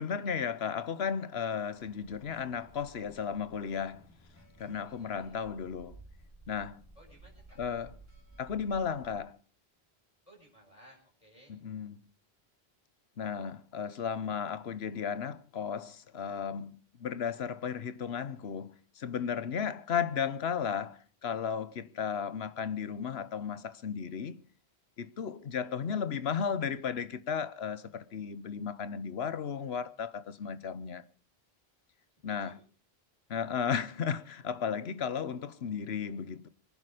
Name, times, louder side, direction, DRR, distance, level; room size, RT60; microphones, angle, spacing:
voice 1, 0.0-4.1 4.6-6.0 6.5-6.8 7.6-7.9 8.4-9.4 11.5-12.0 13.2-24.4 25.0-31.0 32.2-32.6 33.3-36.5, left 7 dB, 75° left, 1.2 m, -34 dB
sound 1, 1.7-9.1, right 2 dB, 15° left, 4.4 m, -56 dB
voice 2, 5.0-5.3 7.0-7.6 10.3-11.5 21.9-22.3 32.3-32.6, equal, 30° left, 6.0 m, -59 dB
24.0 x 10.5 x 5.1 m
omnidirectional pair, 1.1 m